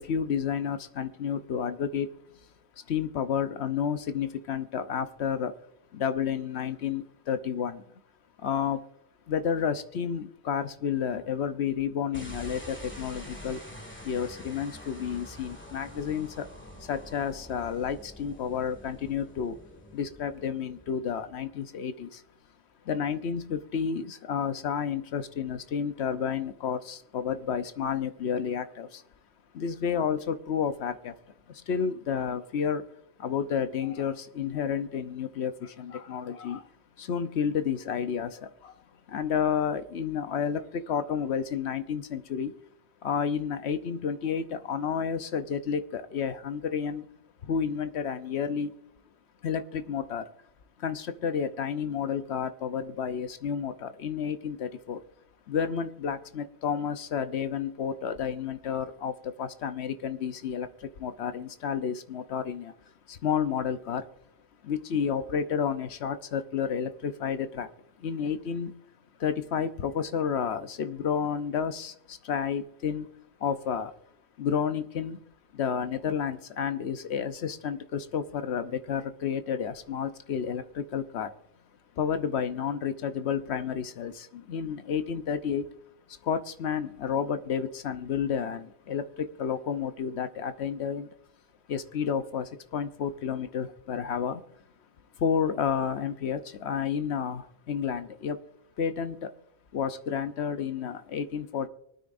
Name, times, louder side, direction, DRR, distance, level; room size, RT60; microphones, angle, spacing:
voice 1, 0.0-2.1 2.9-5.5 5.9-7.8 8.4-8.8 9.3-13.6 14.0-16.5 16.8-19.6 19.9-22.2 22.8-29.0 29.5-31.2 31.5-32.8 33.2-36.7 37.0-38.7 39.1-42.5 43.0-47.1 47.4-48.7 49.4-50.3 50.8-55.0 55.5-62.7 63.1-64.1 64.6-67.7 68.0-68.8 69.2-73.1 73.4-73.9 74.4-75.2 75.5-81.3 82.0-85.7 86.2-91.1 91.7-94.4 95.2-98.4 98.8-99.3 99.7-101.7, left 7 dB, 80° left, 10 dB, 1.1 m, -31 dB
sound 1, 12.1-21.5, left 1 dB, 10° left, 1.9 m, -46 dB
24.0 x 9.4 x 2.6 m, 0.76 s
omnidirectional pair, 1.1 m